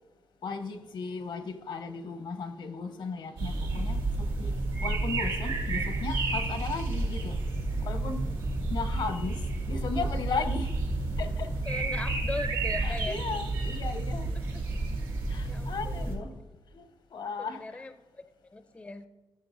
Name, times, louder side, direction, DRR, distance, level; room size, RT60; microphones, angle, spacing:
voice 1, 0.4-4.5 4.8-7.4 7.8-8.3 8.7-10.7 11.2-11.5 12.8-14.3 15.3-16.3 16.7-16.8 17.1-17.9, left 4 dB, 70° left, 0.8 m, -36 dB
sound 1, 3.4-16.2, right 2 dB, 90° right, 1.8 m, -31 dB
voice 2, 11.7-13.2 14.3-14.6 15.5-16.6 17.4-18.2 18.5-19.1, left 2 dB, 15° left, 0.4 m, -40 dB
15.0 x 6.9 x 2.6 m
wide cardioid pair, 130°, 8 cm